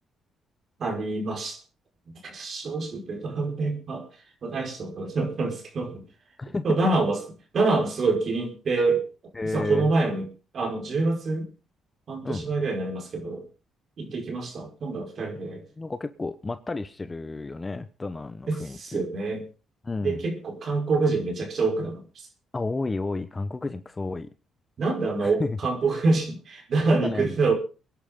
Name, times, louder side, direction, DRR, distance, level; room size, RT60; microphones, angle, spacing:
voice 1, 0.8-1.6 2.2-4.1 4.4-6.1 6.5-7.2 7.5-9.0 9.5-10.3 10.5-11.5 12.1-13.4 14.0-15.6 18.5-19.4 20.0-22.3 24.8-27.5, right 3 dB, 50° right, 5.1 m, -26 dB
voice 2, 9.4-9.9 12.2-12.5 15.4-19.0 19.8-20.2 22.5-24.3 25.2-25.6 26.9-27.4, left 3 dB, 25° left, 1.0 m, -32 dB
24.0 x 10.5 x 3.8 m
cardioid pair, 90°, 0 cm